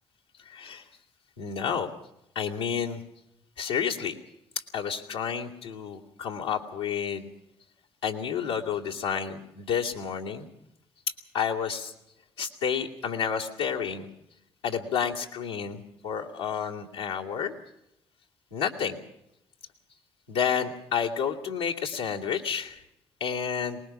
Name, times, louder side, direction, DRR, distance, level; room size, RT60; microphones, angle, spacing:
voice 1, 0.4-0.9 1.4-1.9 2.3-3.0 3.6-4.2 4.7-7.3 8.0-10.5 11.3-11.9 12.4-14.1 14.6-17.5 18.5-19.0 20.3-22.8 23.2-23.8, left 7 dB, 85° left, -3 dB, 2.5 m, -30 dB
23.5 x 20.0 x 6.0 m, 0.83 s
hypercardioid pair, 45°, 14 cm